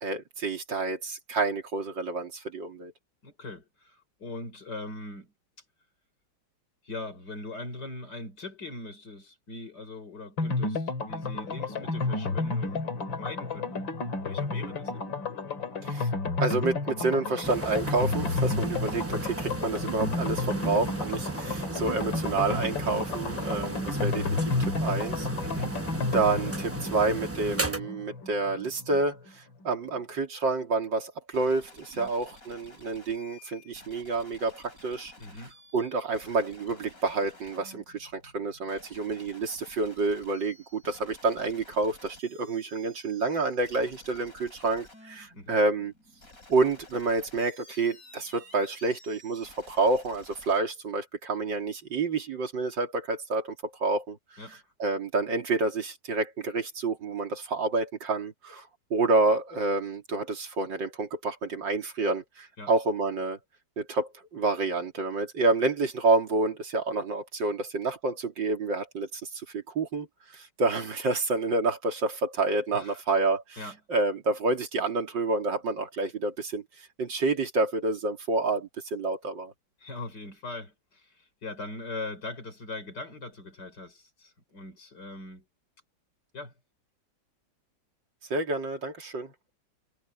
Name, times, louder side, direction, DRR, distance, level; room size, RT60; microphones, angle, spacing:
voice 1, 0.0-2.9 15.8-16.1 16.4-25.3 26.1-35.1 35.7-45.9 46.5-54.2 54.8-63.4 63.8-70.1 70.3-73.6 73.9-79.5 88.3-89.3, right 3 dB, 75° right, 3.6 m, -29 dB
voice 2, 3.2-5.3 6.8-13.9 14.2-15.1 23.3-23.7 25.4-25.8 32.0-32.1 35.2-35.5 45.3-45.6 54.4-54.6 62.6-62.7 72.7-73.0 73.6-73.8 79.8-85.4 86.3-86.5, left 2 dB, 60° left, 5.0 m, -41 dB
sound 1, 10.4-29.0 29.3-29.4 29.6-29.7, left 3 dB, 80° left, 3.3 m, -31 dB
sound 2, 17.4-27.8, right 2 dB, 15° right, 0.5 m, -35 dB
sound 3, 31.3-50.6, left 1 dB, 45° left, 7.0 m, -53 dB
omnidirectional pair, 2.0 m